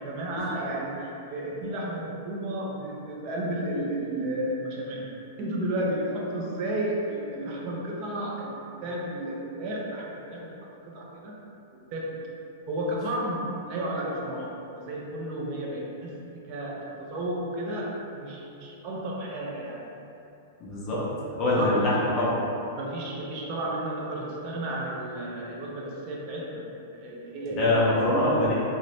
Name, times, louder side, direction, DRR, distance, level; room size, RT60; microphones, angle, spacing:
voice 1, 0.0-11.4 11.7-12.2 12.7-19.9 21.4-22.2 22.7-28.2, right 1 dB, 30° right, -3 dB, 0.4 m, -33 dB
voice 2, 20.6-21.0 21.3-22.4 27.5-28.5, left 1 dB, 25° left, -7 dB, 0.6 m, -24 dB
2.6 x 2.1 x 3.1 m, 2.7 s
supercardioid pair, 170°, 0 cm